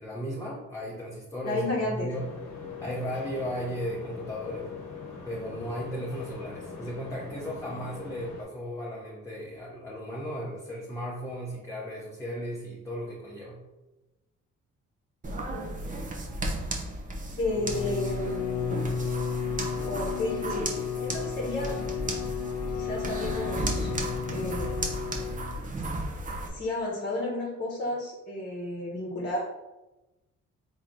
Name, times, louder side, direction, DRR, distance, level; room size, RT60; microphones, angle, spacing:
voice 1, 0.0-2.3 2.8-4.8 5.2-13.6, equal, 10° left, -5 dB, 0.8 m, -36 dB
voice 2, 1.4-2.1 15.5-15.7 17.4-18.9 19.8-21.8 22.7-23.9 24.3-25.1 26.4-29.4, left 1 dB, 35° left, -3 dB, 1.1 m, -32 dB
sound 1, 2.1-8.4, left 5 dB, 85° left, 1.0 m, -42 dB
sound 2, 15.2-26.5, right 1 dB, 25° right, 0.7 m, -34 dB
Bowed string instrument, 17.4-25.7, left 7 dB, 70° left, 0.5 m, -33 dB
3.6 x 2.9 x 3.6 m, 1.0 s
cardioid pair, 90°, 30 cm